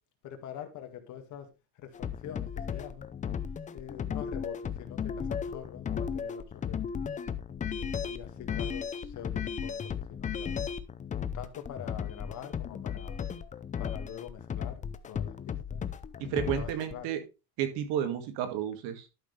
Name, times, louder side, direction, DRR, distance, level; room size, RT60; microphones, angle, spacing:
voice 1, 0.2-3.1 3.7-6.8 7.6-10.7 11.3-13.2 13.8-15.8 16.6-17.1, left 9 dB, 50° left, 2.0 m, -45 dB
sound 1, 1.9-16.9, left 7 dB, 20° left, 0.5 m, -35 dB
voice 2, 16.2-17.2 17.6-19.1, right 9 dB, 80° right, 2.2 m, -32 dB
11.5 x 6.3 x 3.3 m
cardioid pair, 145°, 38 cm